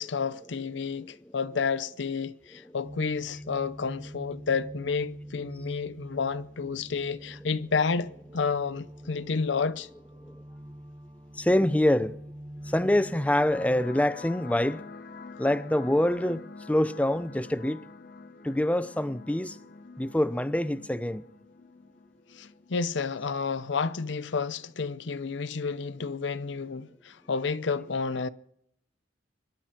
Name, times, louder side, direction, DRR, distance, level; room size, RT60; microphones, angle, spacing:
voice 1, 0.0-9.9 22.3-28.3, left 5 dB, 70° left, 0.6 m, -30 dB
sound 1, 2.8-13.9, equal, 20° right, 0.8 m, -45 dB
voice 2, 11.3-12.2 12.7-14.8 15.4-17.8 18.4-19.6 20.0-21.3, left 1 dB, 5° left, 0.5 m, -25 dB
sound 2, 12.6-23.5, left 4 dB, 50° left, 1.1 m, -48 dB
25.5 x 11.5 x 4.4 m
head